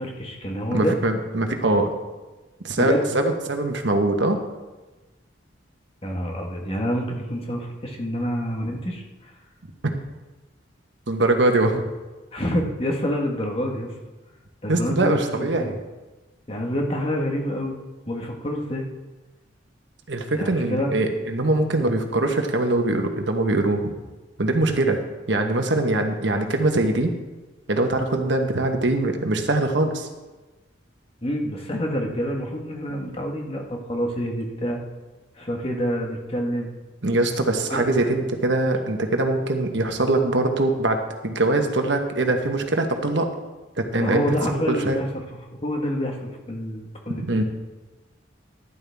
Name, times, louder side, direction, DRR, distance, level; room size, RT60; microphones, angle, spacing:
voice 1, 0.0-0.9 2.8-3.1 6.0-9.4 12.3-13.9 14.6-15.7 16.5-17.8 18.1-18.9 20.3-20.9 31.2-34.8 35.3-36.7 37.7-38.1 44.0-45.2 45.5-47.4, equal, 30° left, 1 dB, 1.5 m, -27 dB
voice 2, 0.7-1.9 2.6-4.4 11.1-11.8 14.7-15.8 20.1-23.9 24.4-25.0 25.3-27.1 27.7-30.1 32.1-32.2 37.0-43.3 43.8-45.0 47.2-47.4, right 2 dB, 65° right, 5 dB, 1.2 m, -22 dB
12.5 x 11.0 x 3.5 m, 1.2 s
head